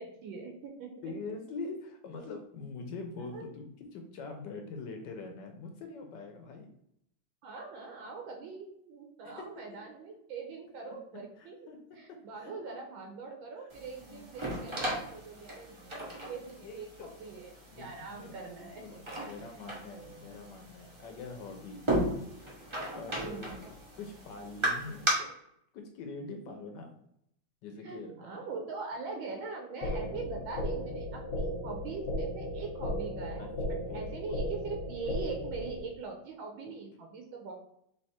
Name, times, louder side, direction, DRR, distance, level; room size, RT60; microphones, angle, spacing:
voice 1, 0.0-1.3 3.3-3.5 7.4-11.6 11.9-19.0 23.1-23.6 27.8-33.6 33.9-37.5, right 4 dB, 80° right, 2 dB, 1.5 m, -42 dB
voice 2, 1.0-6.7 9.2-9.5 11.1-11.8 12.1-12.5 13.6-13.7 14.1-14.3 16.6-17.1 17.7-18.3 18.8-21.8 22.9-23.5 24.0-25.3 25.7-26.9 27.6-28.4 33.4-33.5 33.9-34.0 36.7-36.8, left 3 dB, 70° left, 4 dB, 1.2 m, -44 dB
sound 1, 13.7-25.1, right 1 dB, 40° right, 0.4 m, -37 dB
sound 2, 29.8-35.8, equal, 45° left, 1.0 m, -35 dB
3.5 x 3.3 x 4.2 m, 0.73 s
omnidirectional pair, 2.1 m